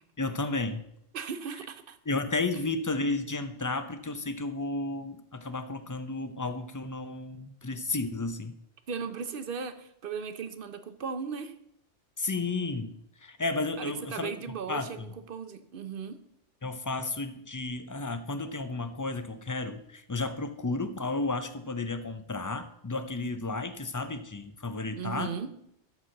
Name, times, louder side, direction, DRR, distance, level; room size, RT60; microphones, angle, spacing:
voice 1, 0.2-0.8 2.1-8.6 12.2-15.1 16.6-25.3, left 3 dB, 25° left, 9 dB, 0.4 m, -33 dB
voice 2, 1.1-2.0 8.9-11.5 13.8-16.2 25.0-25.5, right 6 dB, 50° right, 10 dB, 0.9 m, -37 dB
12.5 x 4.3 x 6.4 m, 0.75 s
omnidirectional pair, 1.2 m